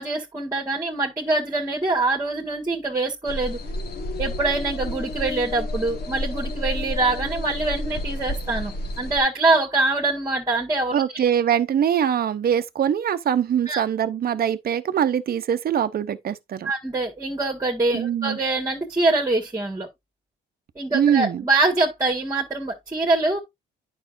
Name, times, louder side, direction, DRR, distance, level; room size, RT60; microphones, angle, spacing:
voice 1, 0.0-3.6 4.2-11.0 13.7-13.8 16.6-19.9 20.7-23.4, right 2 dB, 15° right, 1.7 m, -24 dB
sound 1, 3.3-9.2, left 1 dB, 55° left, 1.6 m, -30 dB
voice 2, 10.9-16.7 17.9-18.4 20.9-21.4, right 9 dB, 50° right, 0.8 m, -23 dB
9.4 x 5.5 x 2.6 m
cardioid pair, 90°, 20 cm